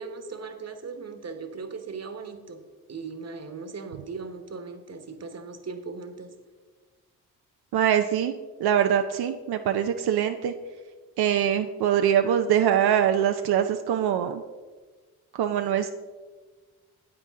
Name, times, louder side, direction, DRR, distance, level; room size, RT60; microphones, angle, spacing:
voice 1, 0.0-2.6 2.9-6.3, right 4 dB, 45° right, 8 dB, 1.2 m, -38 dB
voice 2, 7.7-8.3 8.6-10.5 11.2-14.4 15.3-15.9, right 9 dB, 80° right, 6 dB, 0.5 m, -23 dB
9.8 x 8.2 x 3.6 m, 1.4 s
cardioid pair, 60°, 38 cm